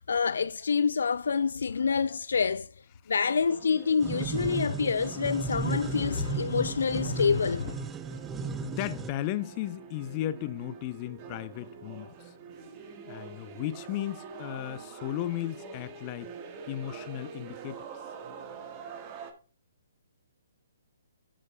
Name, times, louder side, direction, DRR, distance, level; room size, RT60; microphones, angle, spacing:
voice 1, 0.0-2.7 3.1-7.9, left 5 dB, 70° left, 0.3 m, -27 dB
sound 1, 3.3-19.3, right 5 dB, 30° right, 1.4 m, -46 dB
sound 2, 4.0-9.1, right 5 dB, 15° right, 0.6 m, -35 dB
voice 2, 8.6-12.3 13.0-16.3 16.7-17.9, left 13 dB, 30° left, 0.7 m, -35 dB
10.5 x 7.5 x 2.3 m
hypercardioid pair, 135°, 0 cm